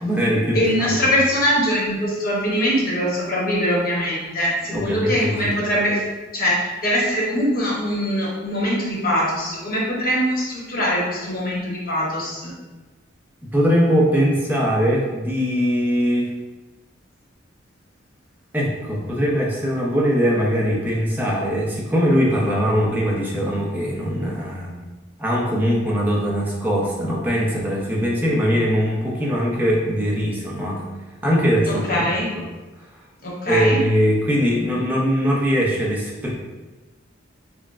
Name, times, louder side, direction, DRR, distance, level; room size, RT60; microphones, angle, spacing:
voice 1, 0.0-1.0 4.7-5.5 13.5-16.3 18.5-24.9 25.2-30.8 31.2-32.0 32.4-32.5 33.5-36.3, equal, 10° right, -4 dB, 0.7 m, -21 dB
voice 2, 0.5-12.5 31.7-32.3 33.2-33.8, equal, 45° left, -4 dB, 1.0 m, -22 dB
5.6 x 2.1 x 2.5 m, 1.2 s
head